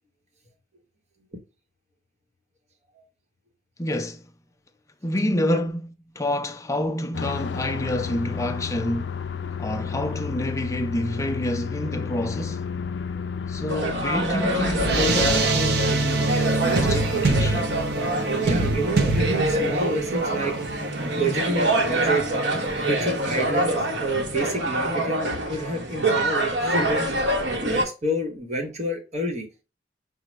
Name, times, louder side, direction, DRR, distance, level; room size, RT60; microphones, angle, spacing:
voice 1, 3.8-4.2 5.0-9.1 9.6-12.7 13.5-17.8, left 1 dB, 15° left, 0.5 m, -28 dB
sound 1, 7.1-15.3, left 6 dB, 70° left, 0.4 m, -32 dB
sound 2, 13.7-24.4, right 2 dB, 65° right, 0.6 m, -26 dB
sound 3, 13.7-27.9, right 1 dB, 85° right, 1.0 m, -26 dB
voice 2, 18.4-20.6 21.0-22.3 22.9-27.1 27.6-29.5, right 1 dB, 40° right, 1.0 m, -29 dB
6.1 x 2.1 x 3.1 m
head